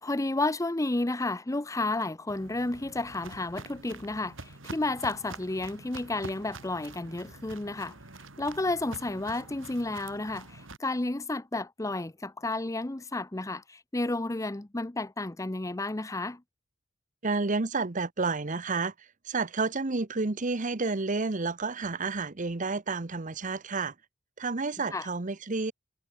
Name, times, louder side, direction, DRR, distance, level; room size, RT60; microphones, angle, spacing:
voice 1, 0.0-7.9 8.4-16.4 24.9-25.1, left 2 dB, 15° left, 0.7 m, -31 dB
Walk footsteps, 2.3-10.8, right 2 dB, 80° right, 4.1 m, -46 dB
voice 2, 17.2-23.9 24.4-25.7, right 3 dB, 40° right, 1.0 m, -30 dB
head